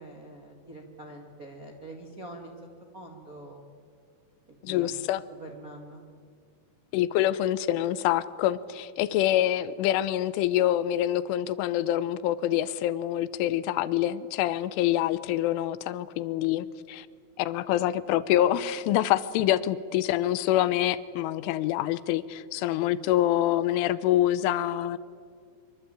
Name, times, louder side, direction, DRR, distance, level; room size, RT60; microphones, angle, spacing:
voice 1, 0.0-2.6 2.9-3.6 4.5-4.9 5.4-6.0, right 1 dB, 60° right, 2 dB, 0.9 m, -44 dB
voice 2, 4.6-5.2 6.9-17.1 17.4-25.0, left 13 dB, 80° left, 16 dB, 3.2 m, -26 dB
25.5 x 24.0 x 9.0 m, 2.1 s
omnidirectional pair, 5.8 m